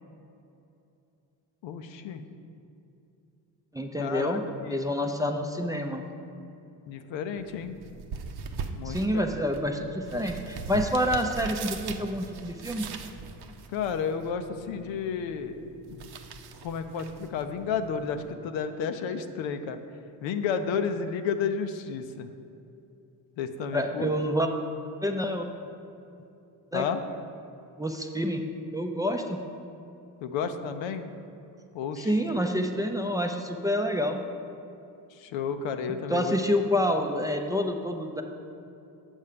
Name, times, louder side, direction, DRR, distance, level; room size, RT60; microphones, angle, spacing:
voice 1, 1.6-2.2 4.0-4.4 4.6-4.8 6.9-7.8 8.8-9.3 13.7-15.6 15.9-16.1 16.6-19.8 20.2-22.3 23.4-24.1 26.7-27.0 30.2-31.0 31.7-32.1 35.2-36.3, left 6 dB, 70° left, 8 dB, 0.7 m, -32 dB
voice 2, 3.7-4.4 4.7-6.0 8.8-12.9 23.7-24.5 25.0-25.5 26.7-26.8 27.8-28.4 28.7-29.4 32.0-34.2 36.1-38.2, equal, 10° right, 3 dB, 0.5 m, -28 dB
sound 1, 7.3-18.3, right 5 dB, 55° right, 0.7 m, -41 dB
7.2 x 5.4 x 5.0 m, 2.7 s
hypercardioid pair, 55°, 47 cm